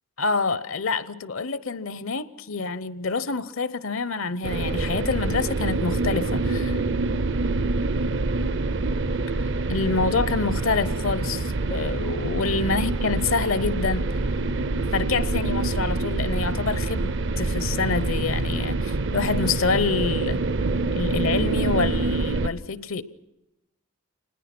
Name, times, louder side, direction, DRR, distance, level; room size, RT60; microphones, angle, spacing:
voice 1, 0.2-6.8 9.7-14.1 14.9-20.4 20.9-23.0, left 4 dB, 70° left, 0.8 m, -27 dB
sound 1, 4.4-22.5, right 2 dB, 55° right, 0.7 m, -26 dB
25.5 x 20.0 x 6.1 m
head